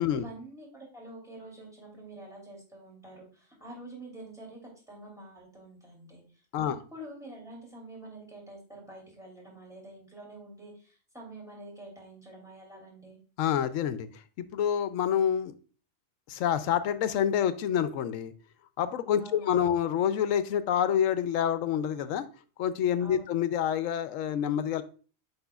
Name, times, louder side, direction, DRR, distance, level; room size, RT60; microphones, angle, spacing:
voice 1, 0.0-6.2 6.6-13.2 19.2-19.5 23.0-23.3, right 1 dB, ahead, -2 dB, 2.6 m, -47 dB
voice 2, 13.4-14.1 14.4-15.5 16.3-18.3 18.8-22.3 22.6-24.8, left 9 dB, 80° left, 13 dB, 1.0 m, -27 dB
7.9 x 5.5 x 2.3 m, 0.37 s
omnidirectional pair, 1.3 m